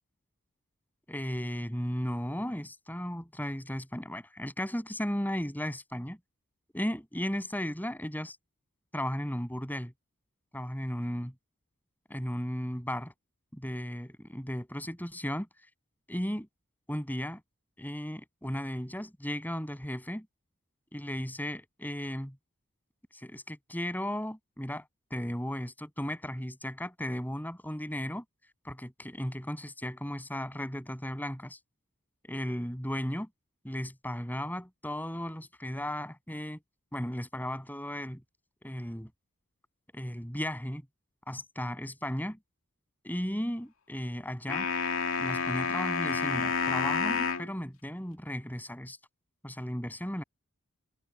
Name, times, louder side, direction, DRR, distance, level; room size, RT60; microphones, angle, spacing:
voice 1, 1.1-6.2 6.7-8.4 8.9-9.9 10.5-11.3 12.1-13.1 13.5-15.5 16.1-16.5 16.9-17.4 17.8-20.3 20.9-22.4 23.1-28.2 28.6-31.6 32.2-33.3 33.6-36.6 36.9-38.2 38.6-39.1 39.9-40.8 41.3-42.4 43.0-44.7 45.2-49.0 49.4-50.2, equal, 10° left, 7.8 m, -35 dB
sound 1, 44.5-47.5, left 5 dB, 90° left, 2.4 m, -29 dB
head